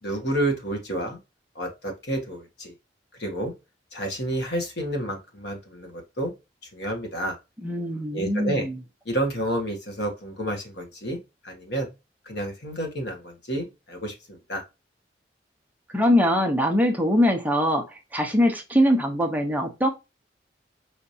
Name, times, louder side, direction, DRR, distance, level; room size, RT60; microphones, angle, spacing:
voice 1, 0.0-1.2 1.5-2.7 3.2-3.5 3.9-6.3 6.7-7.4 8.1-8.6 9.0-11.2 11.4-11.9 12.2-14.6, right 1 dB, 65° left, 2 dB, 1.6 m, -30 dB
voice 2, 7.6-8.8 15.9-19.9, equal, 10° right, 3 dB, 0.8 m, -22 dB
5.0 x 3.3 x 2.7 m, 0.25 s
head